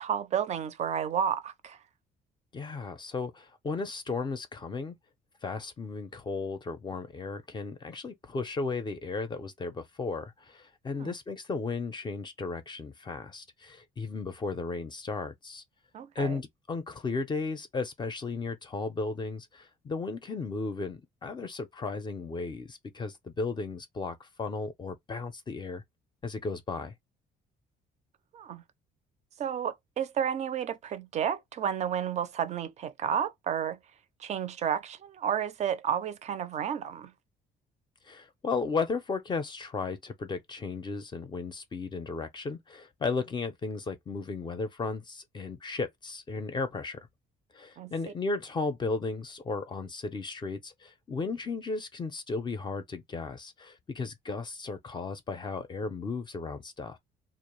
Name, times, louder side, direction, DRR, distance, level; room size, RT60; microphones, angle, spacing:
voice 1, 0.0-1.8 11.0-11.1 15.9-16.4 28.3-28.6 29.4-33.8 34.2-37.1 47.8-48.1, right 8 dB, 40° right, 0.4 m, -31 dB
voice 2, 2.5-5.0 5.4-15.6 16.2-25.8 26.2-26.9 38.0-47.0 47.5-57.0, left 4 dB, 25° left, 0.4 m, -35 dB
2.2 x 2.0 x 3.0 m
cardioid pair, 110°, 17 cm